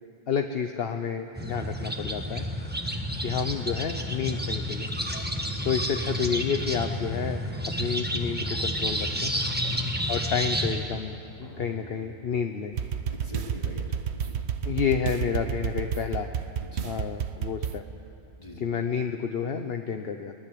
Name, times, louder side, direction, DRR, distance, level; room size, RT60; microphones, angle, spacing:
voice 1, 0.3-2.5 3.2-4.9 5.6-9.3 10.1-11.1 11.4-12.8 14.6-16.3 16.8-17.8 18.6-20.3, left 7 dB, 70° left, 6 dB, 1.1 m, -30 dB
sound 1, 1.4-10.8, equal, 10° right, 1.7 m, -30 dB
voice 2, 5.3-5.6 9.5-9.9 13.1-13.8 14.1-14.4 16.6-16.9 18.4-18.7, left 1 dB, 35° left, -3 dB, 4.0 m, -43 dB
sound 2, 11.4-13.5, left 2 dB, 85° left, 7.2 m, -47 dB
sound 3, 12.7-17.8, right 7 dB, 85° right, 1.2 m, -31 dB
24.0 x 18.5 x 8.5 m, 2.7 s
omnidirectional pair, 1.1 m